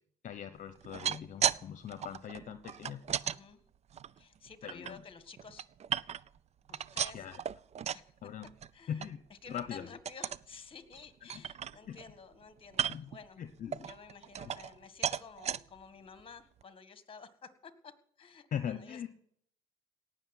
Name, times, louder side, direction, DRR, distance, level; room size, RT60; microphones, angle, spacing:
voice 1, 0.2-3.3 4.6-5.0 7.1-7.4 8.2-8.5 8.9-9.2 9.5-9.9 11.3-11.4 11.9-12.0 12.9-13.1 13.4-13.9 14.4-14.5 18.5-19.1, left 8 dB, 50° left, 11 dB, 1.1 m, -41 dB
sound 1, 0.8-1.6 1.9-3.4 3.9-4.9 5.4-6.4 6.7-8.1 8.4-8.7 9.0-9.1 9.5-9.7 10.1-10.5 10.9-11.0 11.3-12.1 12.7-13.2 13.7-14.8 15.0-15.6 16.2-16.3 16.6-16.7, right 8 dB, 40° right, 0.5 m, -35 dB
voice 2, 3.2-3.6 4.2-5.6 6.7-7.3 7.9-8.1 8.7-13.4 13.8-19.1, left 5 dB, 30° left, 12 dB, 1.8 m, -52 dB
18.0 x 6.8 x 9.2 m, 0.67 s
cardioid pair, 110°, 17 cm